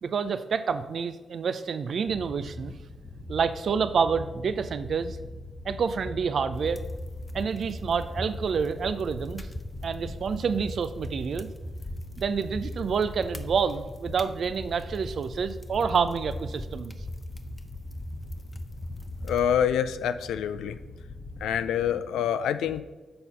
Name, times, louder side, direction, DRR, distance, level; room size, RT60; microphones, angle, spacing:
voice 1, 0.0-2.8 3.3-5.2 5.6-6.8 7.3-9.5 9.8-11.5 12.2-16.9, right 6 dB, 65° right, 11 dB, 0.5 m, -28 dB
sound 1, 2.1-22.0, left 1 dB, 55° left, 1.3 m, -42 dB
sound 2, 6.5-19.6, left 1 dB, 20° left, 0.7 m, -40 dB
voice 2, 19.2-20.8 21.4-22.8, left 9 dB, 80° left, 12 dB, 0.3 m, -26 dB
6.8 x 4.1 x 5.5 m, 1.2 s
hypercardioid pair, 40°, 0 cm